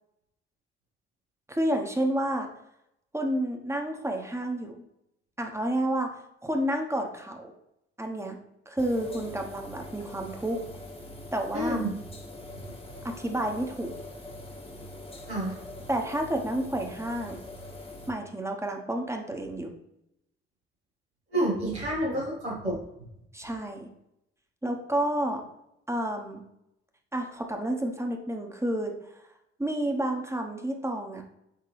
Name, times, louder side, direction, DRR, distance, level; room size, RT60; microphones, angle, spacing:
voice 1, 1.5-2.5 3.1-4.7 5.4-7.5 8.0-8.4 8.7-10.6 11.3-11.8 13.0-13.9 15.9-17.4 18.1-19.7 23.3-23.9 24.6-25.4 25.9-26.4 27.1-28.9 29.6-31.2, right 1 dB, 10° right, 3 dB, 1.3 m, -30 dB
sound 1, 8.8-18.1, left 1 dB, 20° left, 1.4 m, -43 dB
voice 2, 11.5-11.9 15.3-15.6 21.3-22.8, right 1 dB, 85° right, -8 dB, 2.2 m, -28 dB
8.8 x 3.6 x 3.5 m, 0.81 s
figure-of-eight pair, 45°, 31 cm